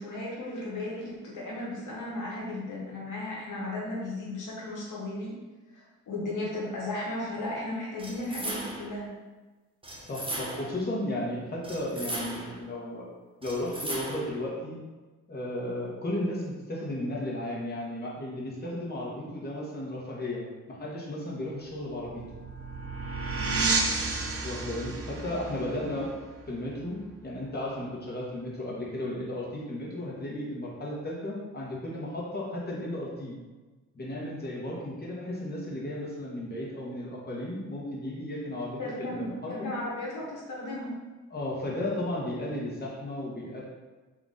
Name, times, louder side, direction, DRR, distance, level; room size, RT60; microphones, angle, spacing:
voice 1, 0.0-5.3 5.7-9.1 23.5-23.8 38.8-40.9, left 1 dB, 80° left, -5 dB, 1.1 m, -35 dB
sound 1, 8.0-9.0 9.8-10.8 11.6-12.6 13.4-14.4, right 1 dB, 15° right, 1.0 m, -37 dB
voice 2, 10.1-13.0 13.4-14.8 15.3-22.2 24.4-26.2 26.5-33.3 33.9-39.7 41.3-43.6, left 1 dB, 30° left, -5 dB, 1.3 m, -34 dB
sound 2, 21.7-27.0, right 3 dB, 50° right, 0.6 m, -32 dB
3.7 x 2.9 x 3.9 m, 1.2 s
cardioid pair, 65°, 31 cm